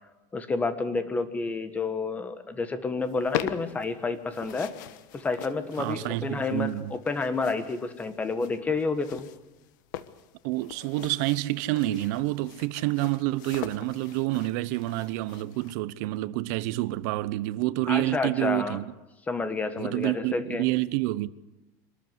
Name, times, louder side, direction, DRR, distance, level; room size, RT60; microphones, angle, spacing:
voice 1, 0.3-4.7 5.1-9.3 17.9-18.8 19.3-20.6, left 4 dB, 15° left, 1.6 m, -29 dB
sound 1, 3.0-15.7, left 13 dB, 85° left, 1.2 m, -41 dB
voice 2, 5.8-6.9 10.4-18.8 19.8-21.3, right 18 dB, 65° right, 0.8 m, -28 dB
24.5 x 13.5 x 9.4 m
supercardioid pair, 150°, 10 cm